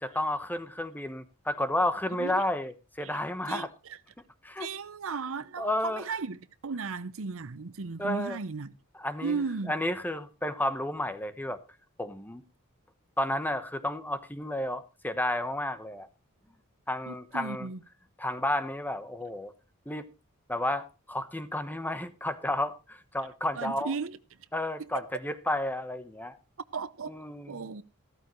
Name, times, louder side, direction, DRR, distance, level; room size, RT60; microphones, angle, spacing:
voice 1, 0.0-3.7 4.4-4.7 5.6-6.0 8.0-8.4 8.9-9.4 9.7-11.6 12.0-12.4 13.2-16.1 16.9-17.7 18.2-19.5 19.9-20.1 20.5-23.9 24.5-26.4 27.1-27.7, left 1 dB, 10° left, 1.1 m, -32 dB
voice 2, 4.6-8.7 9.2-9.7 17.1-17.8 23.6-24.2 24.8-25.1 26.7-27.1 27.5-27.8, right 4 dB, 65° right, 0.8 m, -35 dB
14.5 x 13.5 x 3.1 m
head